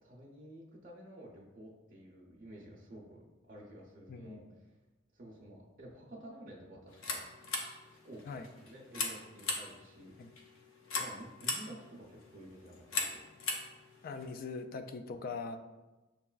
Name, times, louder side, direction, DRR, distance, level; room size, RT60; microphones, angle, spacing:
voice 1, 0.0-4.7 5.1-7.2 7.9-10.4 10.9-13.2, right 1 dB, 45° right, -4 dB, 0.6 m, -52 dB
voice 2, 4.1-4.4 8.3-8.5 10.2-10.3 14.0-15.6, left 4 dB, 45° left, 7 dB, 0.3 m, -41 dB
sound 1, 6.9-14.3, left 3 dB, 85° left, 0.6 m, -40 dB
6.7 x 2.3 x 2.3 m, 1.1 s
head